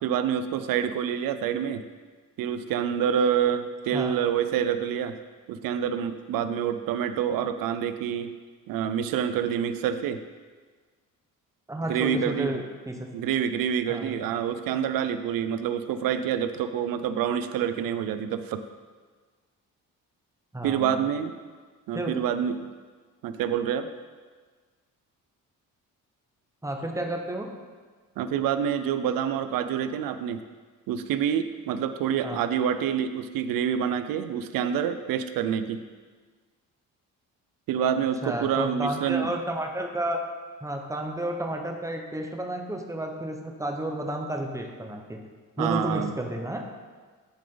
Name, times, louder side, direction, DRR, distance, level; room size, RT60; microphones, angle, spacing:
voice 1, 0.0-1.8 2.4-5.2 5.5-8.3 8.7-10.2 11.9-12.5 13.1-18.6 20.6-21.3 21.9-22.7 23.2-23.9 28.2-30.4 30.9-35.8 37.7-39.3 45.6-46.1, right 8 dB, 85° right, 10 dB, 0.6 m, -27 dB
voice 2, 11.7-13.1 13.9-14.2 20.5-21.0 21.9-22.1 26.6-27.5 32.2-32.4 38.2-40.2 40.6-45.2 45.6-46.6, right 1 dB, 10° right, 3 dB, 1.0 m, -31 dB
11.5 x 5.0 x 3.9 m, 1.5 s
cardioid pair, 95°, 34 cm